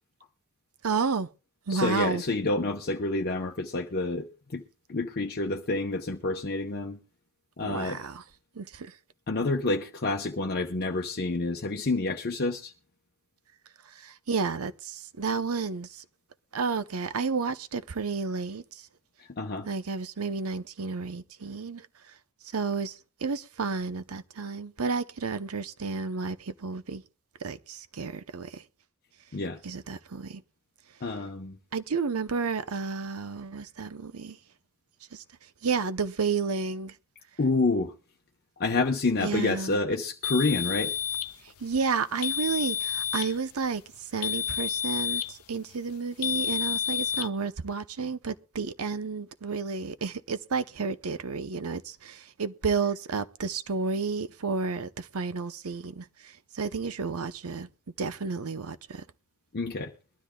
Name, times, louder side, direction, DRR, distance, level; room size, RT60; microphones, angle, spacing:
voice 1, 0.8-1.3 1.7-2.2 7.6-8.2 8.6-8.9 14.0-16.0 16.5-18.6 19.7-21.8 22.5-22.9 23.2-27.0 27.4-28.6 29.6-30.4 31.7-34.4 35.1-35.2 35.6-36.9 39.2-39.8 41.6-43.8 44.1-56.0 56.5-57.7 58.0-59.0, right 5 dB, 75° right, 0.8 m, -31 dB
voice 2, 1.7-4.3 4.5-4.6 4.9-7.0 7.6-8.0 9.3-12.7 19.4-19.7 29.3-29.6 31.0-31.6 37.4-37.9 38.6-40.9 59.5-59.9, left 3 dB, 45° left, 0.9 m, -28 dB
sound 1, 40.2-41.4 42.2-43.4 44.2-45.4 46.2-47.3, left 8 dB, 85° left, 0.7 m, -30 dB
22.5 x 12.5 x 2.3 m
head